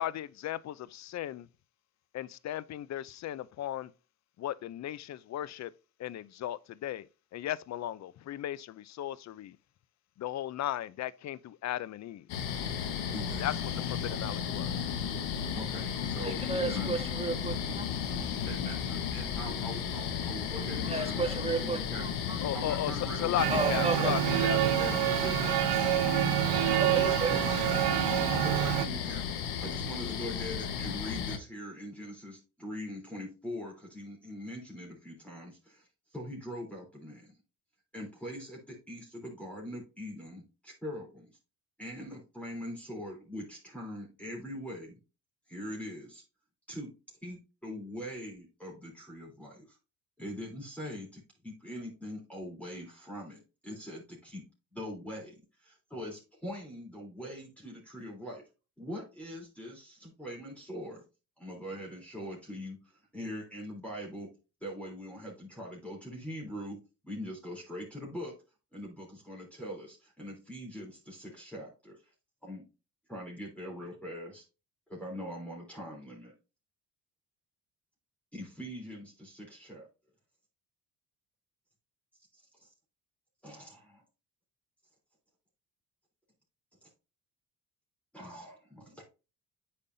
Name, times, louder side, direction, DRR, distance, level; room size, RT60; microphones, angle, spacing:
voice 1, 0.0-1.5 2.1-3.9 4.4-5.7 6.0-7.1 7.3-9.6 10.2-12.2 13.4-13.5 13.8-14.7 22.4-22.9 23.2-24.6, left 12 dB, 45° left, 0.6 m, -36 dB
sound 1, 12.3-31.4, left 8 dB, 85° left, 1.3 m, -34 dB
voice 2, 13.1-13.6 15.5-16.4 16.7-17.0 18.5-22.0 22.5-25.5 26.5-27.7 28.3-29.2 29.6-37.3 37.9-41.3 41.8-45.0 45.5-46.2 46.7-46.9 47.2-49.8 50.2-54.4 54.7-58.4 58.8-61.0 61.4-64.3 64.6-66.8 67.0-68.3 68.7-72.0 72.4-72.7 73.1-74.4 74.9-76.3 78.3-79.9 82.3-82.7 83.4-84.0 86.8-86.9 88.1-89.0, equal, 5° left, 3.5 m, -42 dB
voice 3, 16.2-18.4 20.3-22.6 22.9-23.1 23.5-24.1 26.8-27.6, right 3 dB, 15° right, 1.7 m, -35 dB
Male speech man speaking, 23.4-28.9, right 14 dB, 75° right, 0.7 m, -27 dB
8.4 x 5.3 x 2.7 m
supercardioid pair, 75°, 37 cm